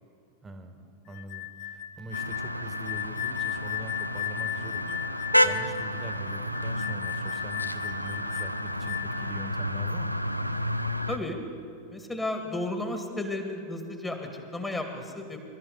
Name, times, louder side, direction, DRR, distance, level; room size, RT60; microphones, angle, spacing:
voice 1, 0.4-10.2, right 2 dB, 15° right, 7 dB, 1.5 m, -43 dB
sound 1, 1.1-9.3, left 12 dB, 40° left, 0.8 m, -36 dB
sound 2, 2.1-11.2, equal, 90° left, 0.5 m, -30 dB
voice 2, 11.1-11.4 11.9-15.4, left 2 dB, 10° left, 4 dB, 1.9 m, -33 dB
24.5 x 13.0 x 4.0 m, 2.4 s
figure-of-eight pair, 90°, 0 cm